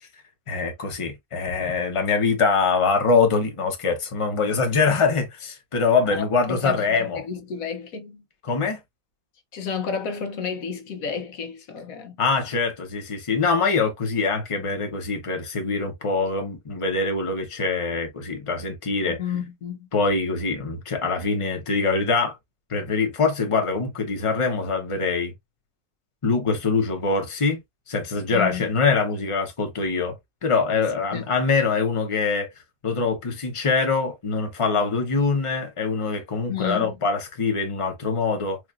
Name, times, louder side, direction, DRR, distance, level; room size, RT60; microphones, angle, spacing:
voice 1, 0.5-7.2 8.4-8.8 12.2-19.2 19.9-22.4 22.7-25.3 26.2-27.6 27.9-32.5 32.8-38.6, left 4 dB, 25° left, 0.9 m, -24 dB
voice 2, 6.1-8.2 9.5-12.2 19.0-19.9 28.3-28.7 31.1-31.3 36.5-36.9, left 7 dB, 75° left, 1.2 m, -31 dB
4.7 x 2.5 x 2.5 m
omnidirectional pair, 1.5 m